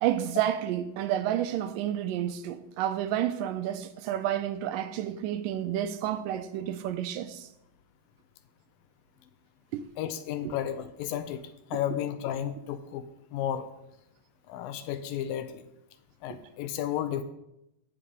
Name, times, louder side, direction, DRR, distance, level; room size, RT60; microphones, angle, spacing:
voice 1, 0.0-7.5 9.7-9.8 16.3-16.4, right 11 dB, 80° right, 2.1 m, -30 dB
voice 2, 10.0-11.4 11.7-13.1 13.3-13.7 14.5-15.6 16.2-17.2, left 10 dB, 85° left, 2.5 m, -32 dB
13.5 x 5.5 x 5.3 m
omnidirectional pair, 4.1 m